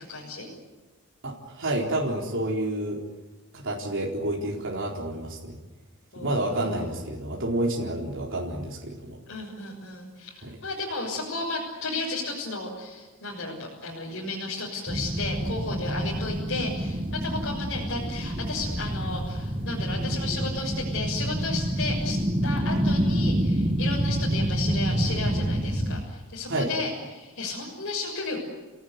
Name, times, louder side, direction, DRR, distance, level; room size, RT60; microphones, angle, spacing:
voice 1, 0.1-0.5 6.1-6.9 9.3-28.4, left 3 dB, 60° left, -3 dB, 6.6 m, -34 dB
voice 2, 1.2-3.0 3.5-5.5 6.2-9.2 10.4-10.5 26.5-26.7, right 1 dB, 60° right, -2 dB, 4.2 m, -29 dB
sound 1, 14.9-26.0, right 1 dB, 25° right, 1.5 m, -27 dB
30.0 x 18.5 x 9.6 m, 1.2 s
head